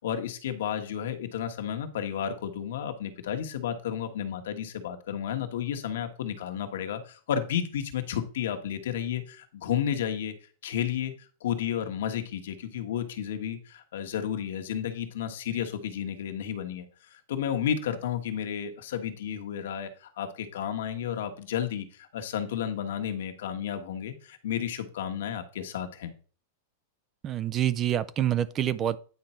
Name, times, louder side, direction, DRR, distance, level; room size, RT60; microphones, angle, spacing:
voice 1, 0.0-10.3 10.6-26.1, left 9 dB, 70° left, 1.3 m, -32 dB
voice 2, 27.2-29.0, right 11 dB, 20° right, 0.3 m, -27 dB
9.5 x 5.3 x 4.4 m
supercardioid pair, 175°, 0 cm